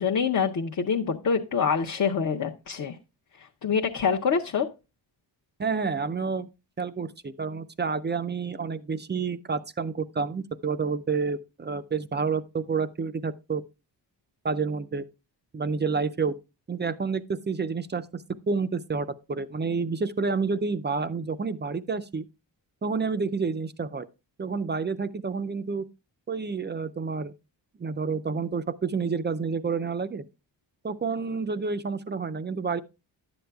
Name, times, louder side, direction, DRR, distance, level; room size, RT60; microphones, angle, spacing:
voice 1, 0.0-3.0 3.6-4.7, left 6 dB, 45° left, 0.6 m, -25 dB
voice 2, 5.6-6.5 6.8-13.6 14.4-15.0 15.5-16.4 16.7-22.2 22.8-24.1 24.4-25.8 26.3-27.3 27.8-30.2 30.8-32.8, right 4 dB, 25° right, 0.3 m, -29 dB
11.0 x 7.8 x 2.3 m
wide cardioid pair, 110°, 46 cm